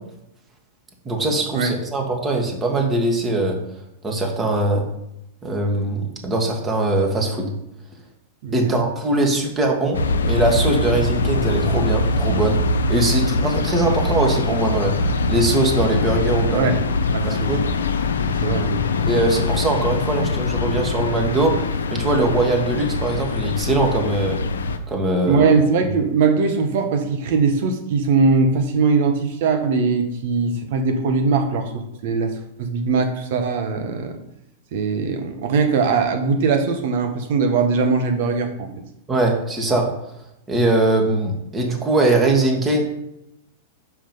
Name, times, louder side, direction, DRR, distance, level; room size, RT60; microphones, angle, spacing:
voice 1, 1.1-3.6 4.0-4.8 5.4-7.5 8.5-10.0 10.2-12.6 12.9-16.7 17.2-17.6 19.1-21.5 21.9-24.4 24.9-25.4 39.1-39.9 40.5-42.8, right 2 dB, 20° right, 1 dB, 1.9 m, -21 dB
voice 2, 8.4-8.7 16.5-17.5 18.1-18.8 25.2-32.3 32.6-34.2 34.7-38.7, right 4 dB, 60° right, 6 dB, 1.3 m, -21 dB
sound 1, 9.9-24.8, left 3 dB, 80° left, 0.6 m, -22 dB
6.0 x 4.9 x 5.4 m, 0.84 s
hypercardioid pair, 105°, 0 cm